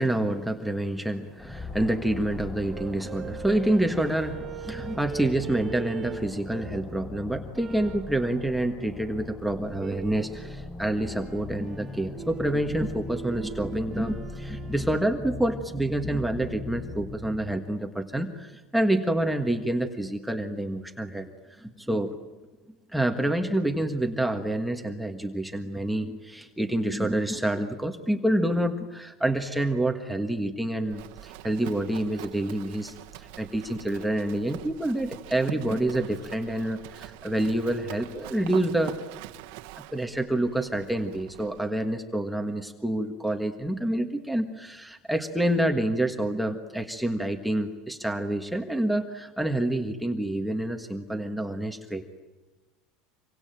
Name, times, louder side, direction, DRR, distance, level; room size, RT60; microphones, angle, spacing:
voice 1, 0.0-21.3 21.6-22.1 22.9-39.0 39.9-52.2, right 1 dB, ahead, 4 dB, 1.5 m, -28 dB
sound 1, 1.4-17.6, left 3 dB, 15° left, 6.0 m, -40 dB
sound 2, 2.7-6.9 7.5-8.1 9.7-10.4 11.0-14.9, right 10 dB, 30° right, 1.4 m, -41 dB
Livestock farm animals working animals, 30.9-41.6, right 15 dB, 70° right, 1.5 m, -44 dB
26.5 x 24.5 x 9.1 m, 1.2 s
supercardioid pair, 150°, 0 cm